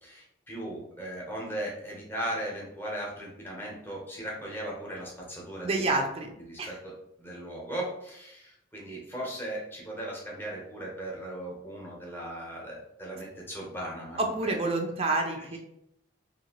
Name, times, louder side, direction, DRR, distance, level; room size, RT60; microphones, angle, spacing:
voice 1, 0.0-6.0 6.5-6.9 7.2-14.6, right 1 dB, 10° left, -4 dB, 0.8 m, -37 dB
voice 2, 5.6-6.3 6.6-6.7 14.2-15.6, right 2 dB, 30° right, 2 dB, 0.4 m, -28 dB
2.8 x 2.5 x 2.9 m, 0.79 s
head